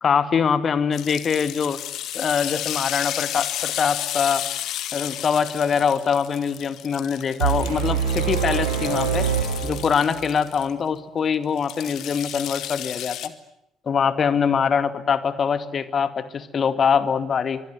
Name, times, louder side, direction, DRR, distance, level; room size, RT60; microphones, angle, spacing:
voice 1, 0.0-1.8 2.1-4.4 4.9-9.3 9.6-13.3 13.9-17.6, left 6 dB, 40° left, 12 dB, 2.3 m, -23 dB
sound 1, 0.9-10.7 11.6-13.3, left 12 dB, 55° left, 1.9 m, -32 dB
sound 2, 7.4-10.4, right 7 dB, 75° right, 4.6 m, -25 dB
29.0 x 25.0 x 7.9 m, 0.76 s
figure-of-eight pair, 50°, 0 cm